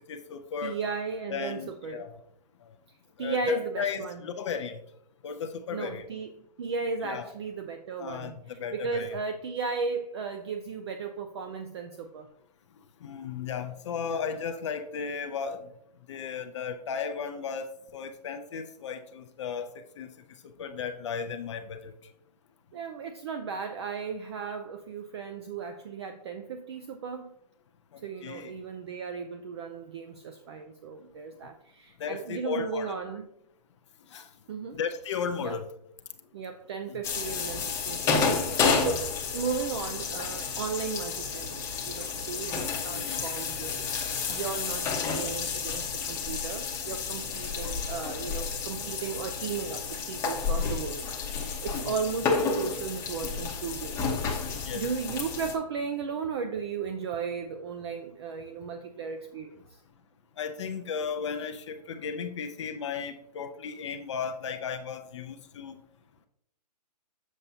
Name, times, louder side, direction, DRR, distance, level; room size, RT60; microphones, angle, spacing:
voice 1, 0.1-0.8 1.3-2.1 3.2-4.8 5.2-6.1 7.0-7.3 8.0-9.1 13.0-15.7 16.1-20.1 20.6-21.9 28.2-28.5 32.0-32.9 34.1-34.3 34.7-35.7 42.9-43.3 54.6-54.8 60.4-65.8, left 6 dB, 45° left, 7 dB, 0.5 m, -35 dB
voice 2, 0.6-2.0 3.2-4.2 5.7-6.3 6.6-12.3 14.1-14.2 22.7-27.3 28.0-33.3 34.5-34.8 35.4-35.6 36.3-43.9 44.3-54.2 54.7-59.8, right 5 dB, 40° right, 7 dB, 0.5 m, -35 dB
sound 1, 37.0-55.5, left 5 dB, 15° left, 0.8 m, -31 dB
7.1 x 6.7 x 2.7 m, 0.76 s
hypercardioid pair, 150°, 21 cm